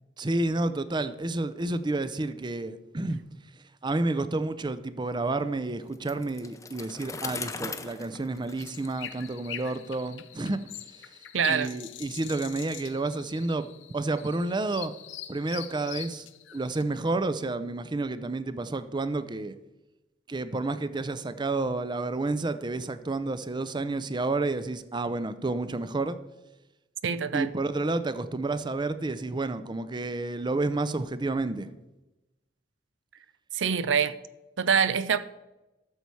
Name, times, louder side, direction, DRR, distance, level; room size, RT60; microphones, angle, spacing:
voice 1, 0.2-3.2 3.8-10.6 11.5-13.7 13.9-14.9 15.3-19.6 20.3-26.2 27.3-31.7, right 2 dB, 25° right, 0.5 m, -30 dB
Bicycle, 5.9-9.8, left 4 dB, 15° left, 0.6 m, -40 dB
sound 1, 8.6-16.8, left 11 dB, 80° left, 0.7 m, -43 dB
voice 2, 11.3-11.8 27.0-27.5 33.5-34.1 34.6-35.2, right 6 dB, 85° right, 0.6 m, -25 dB
12.5 x 6.9 x 4.6 m
head